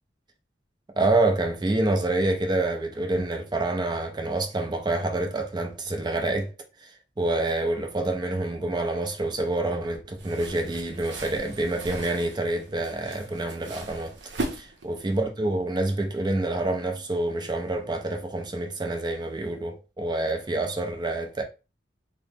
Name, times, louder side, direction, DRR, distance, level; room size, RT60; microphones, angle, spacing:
voice 1, 1.0-6.5 6.8-14.1 14.5-21.4, right 2 dB, 25° right, 0.4 m, -27 dB
sound 1, 10.2-15.2, right 2 dB, 70° right, 0.7 m, -38 dB
2.9 x 2.0 x 3.2 m
head